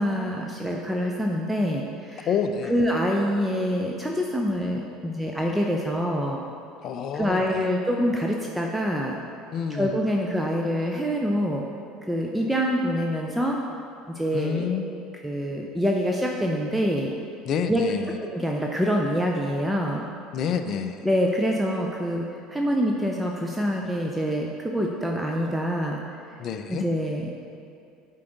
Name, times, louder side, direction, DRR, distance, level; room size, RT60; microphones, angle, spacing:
voice 1, 0.0-2.3 2.7-6.4 7.1-9.2 9.7-11.6 12.1-13.6 14.1-15.0 15.2-17.1 17.7-17.8 18.2-20.0 21.0-26.0 26.7-27.2, equal, 5° right, -1 dB, 0.6 m, -26 dB
voice 2, 2.3-2.8 6.8-7.7 9.5-10.0 14.3-14.9 17.4-18.2 20.3-21.1 26.4-26.8, left 6 dB, 45° left, 8 dB, 0.4 m, -28 dB
8.3 x 4.6 x 3.9 m, 2.6 s
figure-of-eight pair, 65°, 0 cm